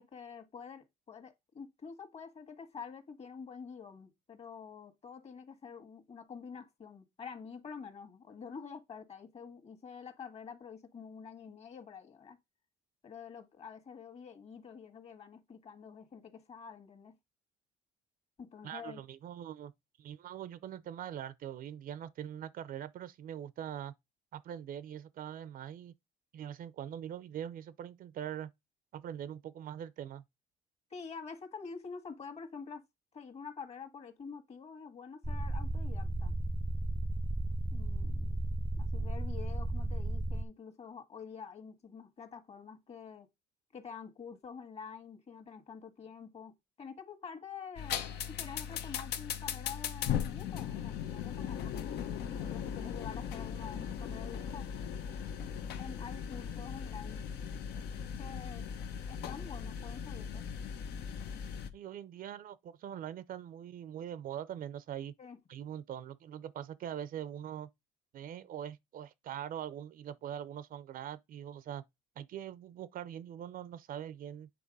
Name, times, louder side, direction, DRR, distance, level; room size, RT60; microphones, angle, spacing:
voice 1, 0.0-12.4 13.0-17.2 18.4-19.0 30.9-32.8 33.1-36.3 37.7-38.4 38.8-43.3 43.7-54.7 55.8-57.3 58.2-58.7 59.1-60.5 65.2-65.4, left 6 dB, 40° left, 1.6 m, -47 dB
voice 2, 18.6-19.7 20.0-23.9 24.3-25.9 26.3-28.5 28.9-30.2 61.7-65.1 65.5-67.7 68.1-71.8 72.2-74.5, right 10 dB, 55° right, 0.6 m, -42 dB
sound 1, 35.2-40.4, right 1 dB, 10° right, 0.6 m, -34 dB
sound 2, 47.8-61.7, left 8 dB, 75° left, 1.0 m, -38 dB
8.5 x 3.3 x 5.4 m
cardioid pair, 110°, 17 cm